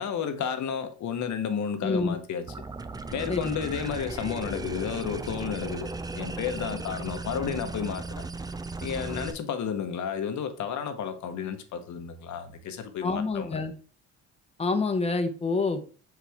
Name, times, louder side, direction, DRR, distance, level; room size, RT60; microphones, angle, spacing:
voice 1, 0.0-2.4 3.1-8.2 8.8-13.5, left 7 dB, 70° left, 1.0 m, -32 dB
voice 2, 1.8-2.2 3.3-3.5 13.0-13.7 14.6-15.9, left 3 dB, 20° left, 0.9 m, -27 dB
sound 1, 2.5-9.3, right 3 dB, 15° right, 0.4 m, -36 dB
5.9 x 4.7 x 3.4 m
cardioid pair, 90°, 30 cm